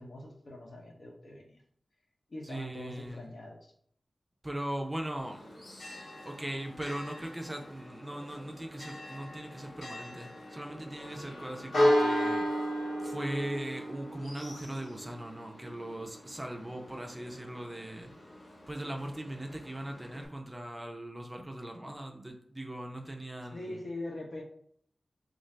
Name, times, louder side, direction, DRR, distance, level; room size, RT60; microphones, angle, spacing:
voice 1, 0.0-1.6 2.3-3.6 23.5-24.4, left 1 dB, 60° left, 0 dB, 0.8 m, -42 dB
voice 2, 2.4-3.2 4.4-5.4 6.2-12.5 13.0-18.1 18.7-23.8, right 1 dB, 20° right, 2 dB, 0.5 m, -39 dB
Church bell, 5.2-20.3, equal, 90° left, 1.2 m, -35 dB
3.7 x 2.6 x 3.2 m, 0.64 s
wide cardioid pair, 95°, 0 cm